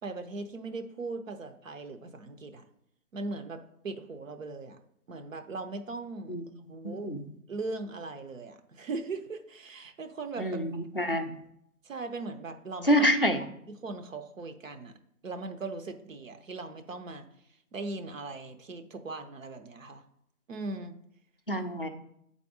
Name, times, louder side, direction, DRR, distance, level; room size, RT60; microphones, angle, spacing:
voice 1, 0.0-2.6 3.1-4.8 5.1-6.3 6.7-7.1 7.5-10.6 11.1-11.2 11.8-13.1 13.8-14.9 15.2-17.3 17.7-20.0 20.5-21.0, right 3 dB, 60° right, 9 dB, 0.9 m, -39 dB
voice 2, 6.8-7.2 10.4-11.3 12.8-13.4 21.5-21.9, equal, 40° left, 5 dB, 0.4 m, -27 dB
7.7 x 4.2 x 4.7 m, 0.75 s
hypercardioid pair, 180°, 45 cm